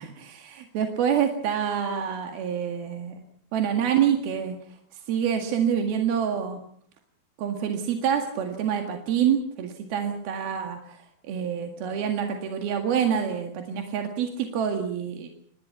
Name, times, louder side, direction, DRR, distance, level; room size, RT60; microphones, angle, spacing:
voice 1, 0.0-3.2 3.5-4.6 4.9-6.6 7.4-15.3, right 8 dB, 80° right, 3 dB, 3.9 m, -27 dB
27.0 x 19.5 x 5.9 m, 0.62 s
omnidirectional pair, 4.2 m